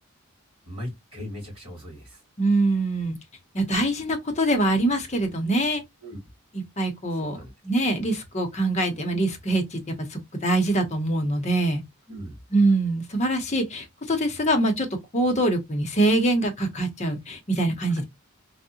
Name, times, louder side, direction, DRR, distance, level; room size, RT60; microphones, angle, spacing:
voice 1, 0.6-2.2 6.0-6.2 7.1-7.5 12.1-12.4, equal, 25° right, 2.1 m, -38 dB
voice 2, 2.4-3.2 3.5-5.8 6.8-7.4 7.6-11.8 12.5-14.9 15.1-18.0, right 1 dB, 30° left, 0.7 m, -24 dB
3.5 x 2.1 x 2.7 m
head